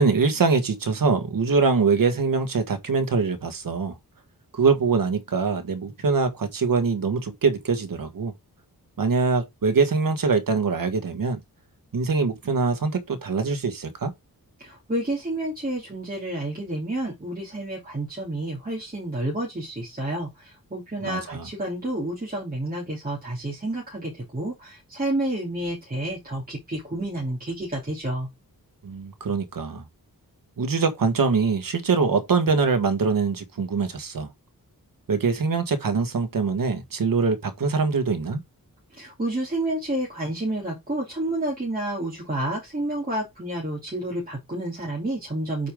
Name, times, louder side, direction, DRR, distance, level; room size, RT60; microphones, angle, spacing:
voice 1, 0.0-4.0 4.5-8.3 9.0-11.4 11.9-14.1 21.0-21.5 28.8-29.8 30.6-34.3 35.1-38.4, right 4 dB, 65° right, 1.5 m, -23 dB
voice 2, 14.6-28.3 38.9-45.7, right 1 dB, 25° right, 3.2 m, -30 dB
8.4 x 5.0 x 3.7 m
wide cardioid pair, 140°, 36 cm